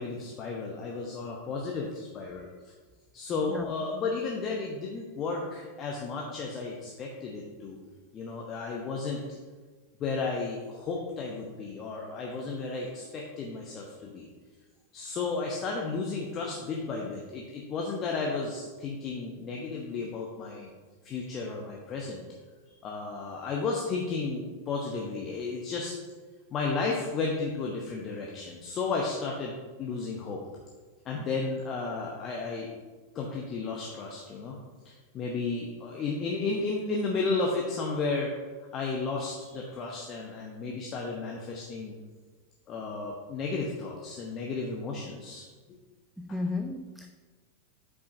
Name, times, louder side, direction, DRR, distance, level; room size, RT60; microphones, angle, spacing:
voice 1, 0.0-2.5 3.1-7.8 8.1-9.2 10.0-14.3 14.9-20.7 21.0-22.2 22.8-25.9 26.5-30.4 31.0-32.7 33.1-34.6 34.8-38.3 38.7-41.9 42.7-45.5 46.3-46.4, left 4 dB, 30° left, -1 dB, 0.8 m, -33 dB
voice 2, 46.2-47.1, left 2 dB, ahead, 5 dB, 0.3 m, -33 dB
8.2 x 4.8 x 2.5 m, 1.4 s
figure-of-eight pair, 90°, 0 cm